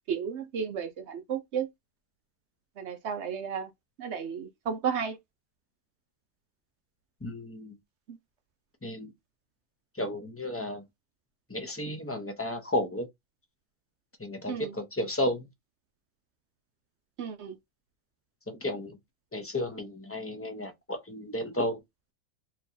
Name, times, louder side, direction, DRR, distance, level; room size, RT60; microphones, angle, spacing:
voice 1, 0.1-1.7 2.8-3.7 4.0-5.2 14.5-14.7 17.2-17.6, right 7 dB, 60° right, 0.8 m, -33 dB
voice 2, 7.2-7.7 8.8-9.1 9.9-10.8 11.5-13.1 14.2-15.5 18.5-19.0 19.3-21.8, left 1 dB, 15° left, 0.5 m, -33 dB
4.3 x 3.0 x 2.7 m
omnidirectional pair, 1.6 m